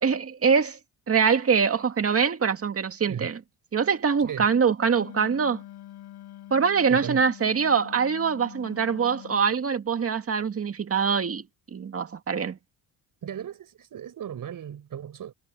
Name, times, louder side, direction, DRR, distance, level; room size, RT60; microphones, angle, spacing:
voice 1, 0.0-0.8 1.1-3.4 3.7-5.6 6.5-11.4 11.7-12.6, right 6 dB, 35° right, 2.1 m, -24 dB
voice 2, 4.2-4.5 6.9-7.2 13.2-15.3, right 9 dB, 55° right, 6.7 m, -36 dB
Wind instrument woodwind instrument, 4.9-9.6, left 13 dB, 80° left, 7.3 m, -45 dB
cardioid pair, 100°, 38 cm